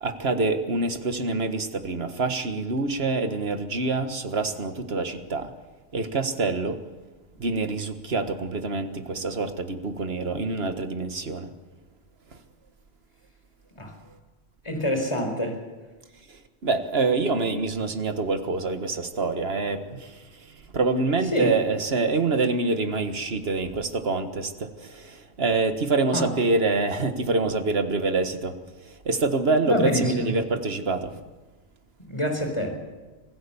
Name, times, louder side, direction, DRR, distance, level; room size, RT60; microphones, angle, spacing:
voice 1, 0.0-5.5 5.9-6.8 7.4-11.5 16.3-28.6 28.8-31.1, right 3 dB, 70° right, 8 dB, 1.8 m, -26 dB
voice 2, 14.6-15.6 21.3-21.5 26.1-26.3 29.6-30.3 32.1-32.8, equal, 25° left, 3 dB, 4.4 m, -26 dB
25.0 x 16.0 x 7.1 m, 1.3 s
omnidirectional pair, 1.1 m